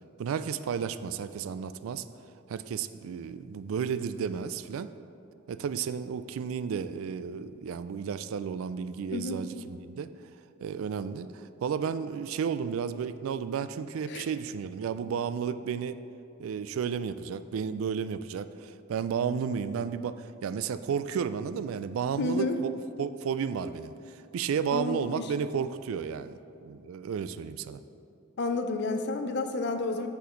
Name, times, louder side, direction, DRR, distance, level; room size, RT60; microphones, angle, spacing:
voice 1, 0.2-2.0 2.5-4.9 5.5-10.1 10.6-16.0 16.4-22.7 23.0-27.8, right 7 dB, 70° right, 13 dB, 0.3 m, -32 dB
voice 2, 22.2-22.6 24.7-25.3 28.4-30.1, left 3 dB, 55° left, 7 dB, 0.5 m, -30 dB
8.3 x 6.2 x 3.8 m, 2.6 s
head